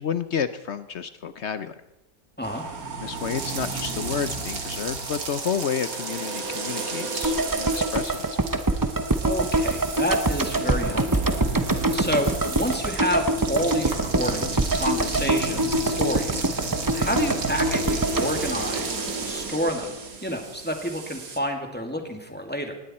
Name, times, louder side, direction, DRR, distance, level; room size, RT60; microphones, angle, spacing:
voice 1, 0.0-1.7 3.0-8.3, left 7 dB, 60° left, 12 dB, 0.7 m, -30 dB
sound 1, 2.4-21.4, right 3 dB, 60° right, 2.0 m, -35 dB
sound 2, 3.1-19.9, right 4 dB, 90° right, 2.7 m, -36 dB
sound 3, 7.2-19.4 19.7-19.8, right 2 dB, 20° right, 0.5 m, -25 dB
voice 2, 9.2-11.4 11.9-16.4 16.9-22.7, equal, 5° left, 3 dB, 2.0 m, -29 dB
19.5 x 16.5 x 4.3 m, 0.96 s
omnidirectional pair, 1.8 m